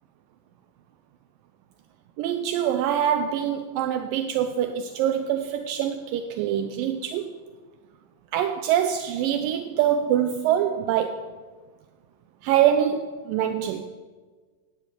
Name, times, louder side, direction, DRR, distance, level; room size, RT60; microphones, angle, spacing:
voice 1, 2.2-7.3 8.3-11.3 12.4-13.8, right 10 dB, 85° right, 8 dB, 2.0 m, -24 dB
15.0 x 9.9 x 5.3 m, 1.4 s
omnidirectional pair, 4.6 m